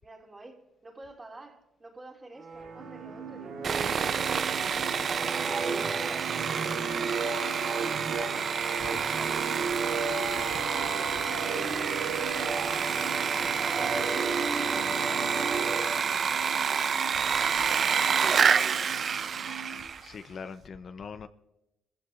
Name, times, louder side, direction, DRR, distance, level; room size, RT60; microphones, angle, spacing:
voice 1, 0.0-8.6 9.2-12.1 13.2-16.8 17.3-17.7 18.2-19.2, right 2 dB, 25° right, 3.0 m, -47 dB
sound 1, 2.4-16.5, right 4 dB, 70° right, 3.1 m, -35 dB
sound 2, 2.7-19.8, right 6 dB, 65° left, 4.3 m, -45 dB
Sawing, 3.6-20.1, right 6 dB, 50° right, 0.5 m, -29 dB
voice 2, 20.0-21.3, left 5 dB, 50° left, 0.6 m, -42 dB
24.5 x 15.0 x 2.5 m
cardioid pair, 90°, 0 cm